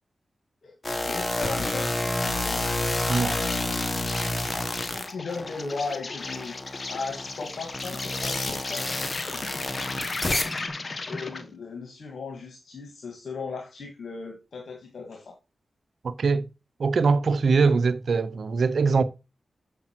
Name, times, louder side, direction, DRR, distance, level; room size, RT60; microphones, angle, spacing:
voice 1, 0.6-2.7 4.7-6.5 6.9-9.0 9.3-15.4, left 4 dB, 75° left, 1.9 m, -37 dB
sound 1, 0.8-5.8 6.2-10.7, left 2 dB, 35° left, 2.1 m, -29 dB
Insect, 2.2-11.5, left 3 dB, 50° left, 1.4 m, -37 dB
voice 2, 16.0-16.5 16.8-19.0, right 4 dB, 70° right, 0.9 m, -22 dB
7.3 x 6.7 x 4.6 m
cardioid pair, 40°, 0 cm